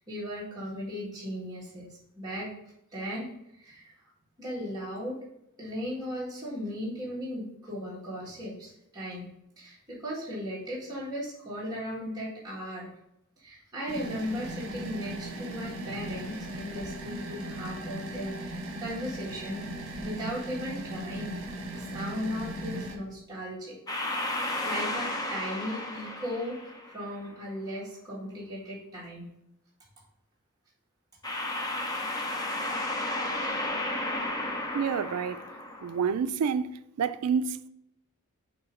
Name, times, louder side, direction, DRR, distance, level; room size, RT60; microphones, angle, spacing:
voice 1, 0.1-2.5 2.9-3.9 4.4-5.2 5.6-9.3 9.6-12.9 13.4-19.6 20.0-21.4 21.7-23.8 24.6-26.6 26.8-29.3, equal, 15° right, 1.7 m, -37 dB
sound 1, 13.9-23.0, right 1 dB, 60° right, 1.3 m, -38 dB
sound 2, 23.9-27.2 31.2-36.1, left 1 dB, 15° left, 0.7 m, -33 dB
voice 2, 34.7-35.5 35.8-36.7 37.0-37.7, right 6 dB, 80° right, 0.4 m, -28 dB
6.9 x 2.8 x 5.0 m
head